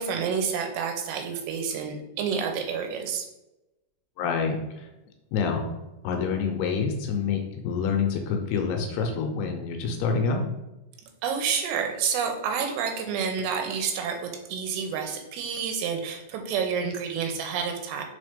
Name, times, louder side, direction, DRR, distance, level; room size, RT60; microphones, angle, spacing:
voice 1, 0.0-3.3 11.2-18.1, right 6 dB, 80° right, 5 dB, 2.9 m, -29 dB
voice 2, 4.2-4.9 5.3-5.7 6.0-10.5, left 5 dB, 75° left, 3 dB, 2.7 m, -27 dB
5.9 x 4.3 x 5.1 m, 0.99 s
omnidirectional pair, 4.9 m